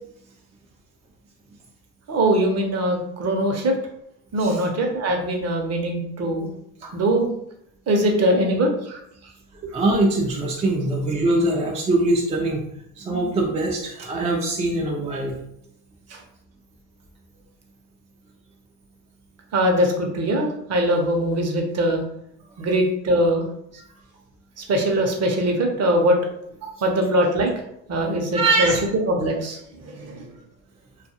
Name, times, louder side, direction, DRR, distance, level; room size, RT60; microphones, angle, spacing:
voice 1, 2.1-3.7 4.3-6.5 6.9-7.3 7.9-9.0 9.6-9.7 13.1-13.2 16.1-16.2 19.5-22.0 22.6-23.4 24.6-26.2 26.6-27.5 27.9-28.7 29.1-29.6 29.8-30.2, right 1 dB, 35° right, 2 dB, 0.7 m, -22 dB
voice 2, 9.7-12.6 13.0-15.4 28.3-28.8, right 2 dB, 15° right, -2 dB, 0.4 m, -22 dB
2.4 x 2.4 x 2.7 m, 0.76 s
supercardioid pair, 85°, 43 cm